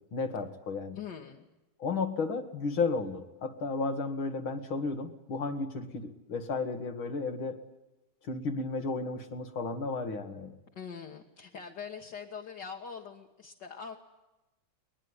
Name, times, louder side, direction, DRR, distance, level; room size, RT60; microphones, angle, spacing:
voice 1, 0.1-1.0 1.8-7.6 8.2-10.6, left 4 dB, 80° left, 7 dB, 2.8 m, -33 dB
voice 2, 1.0-1.4 10.8-14.0, left 6 dB, 60° left, 0 dB, 2.2 m, -43 dB
21.5 x 21.5 x 9.8 m, 1.0 s
omnidirectional pair, 2.2 m